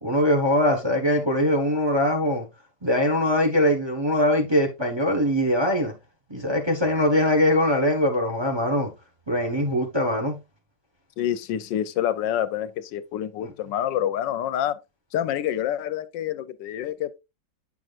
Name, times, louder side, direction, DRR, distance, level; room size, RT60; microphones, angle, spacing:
voice 1, 0.0-2.4 2.8-5.9 6.3-8.9 9.3-10.4, left 1 dB, 15° right, 1.0 m, -22 dB
voice 2, 11.2-14.8 15.1-17.2, left 11 dB, 85° left, 1.3 m, -27 dB
8.8 x 6.1 x 2.4 m
omnidirectional pair, 2.0 m